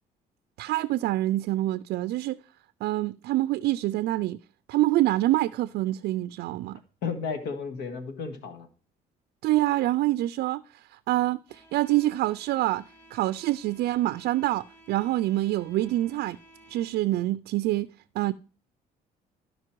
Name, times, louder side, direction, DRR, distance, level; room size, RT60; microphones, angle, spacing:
voice 1, 0.6-2.4 2.8-4.4 4.7-6.8 9.4-12.8 13.1-16.4 16.7-17.9 18.2-18.3, right 16 dB, 70° right, 0.4 m, -26 dB
voice 2, 7.0-8.7, left 5 dB, 85° left, 1.7 m, -33 dB
sound 1, 11.5-16.9, right 1 dB, 15° left, 2.3 m, -56 dB
12.5 x 5.3 x 4.5 m
cardioid pair, 110°, 17 cm